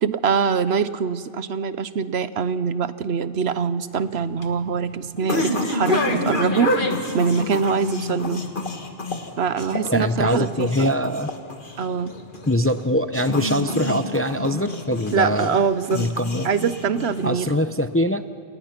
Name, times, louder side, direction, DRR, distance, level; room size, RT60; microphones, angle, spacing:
voice 1, 0.0-6.7 7.1-8.4 9.4-10.9 11.8-12.2 15.1-16.1 16.4-17.5, right 6 dB, 70° right, 14 dB, 1.1 m, -23 dB
sound 1, 3.9-17.5, left 2 dB, 50° left, 1.9 m, -28 dB
voice 2, 9.9-11.3 12.5-15.6 15.9-16.5 17.2-18.3, equal, 15° left, 10 dB, 0.5 m, -23 dB
29.0 x 27.5 x 5.9 m, 2.5 s
omnidirectional pair, 1.1 m